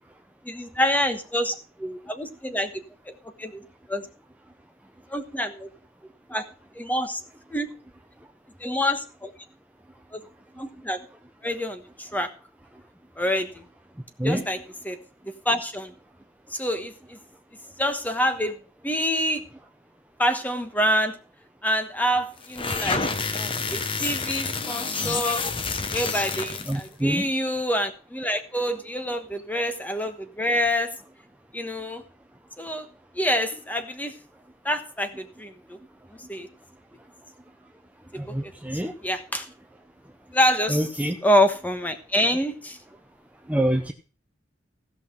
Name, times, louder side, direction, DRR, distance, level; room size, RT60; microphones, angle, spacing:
voice 1, 0.4-1.5 1.8-2.7 3.4-3.6 3.9-4.0 5.1-5.7 6.3-6.4 6.7-7.2 7.5-7.7 8.6-9.3 10.1-10.2 10.6-11.0 11.4-12.3 13.2-13.6 14.2-14.6 14.8-15.0 15.4-15.9 16.5-17.2 17.8-18.6 18.8-19.4 20.2-21.1 21.6-23.0 23.3-25.4 25.9-30.9 31.5-32.0 32.6-32.9 33.2-34.1 34.6-35.8 36.3-36.5 39.0-39.5 40.3-40.9 41.2-42.8, equal, 10° left, 8 dB, 1.2 m, -26 dB
sound 1, 22.4-26.9, left 4 dB, 30° left, 0.9 m, -28 dB
voice 2, 26.7-27.2 38.2-38.9 40.7-41.2 43.5-43.9, right 1 dB, 10° right, 4 dB, 0.7 m, -26 dB
16.0 x 5.8 x 5.8 m, 0.38 s
head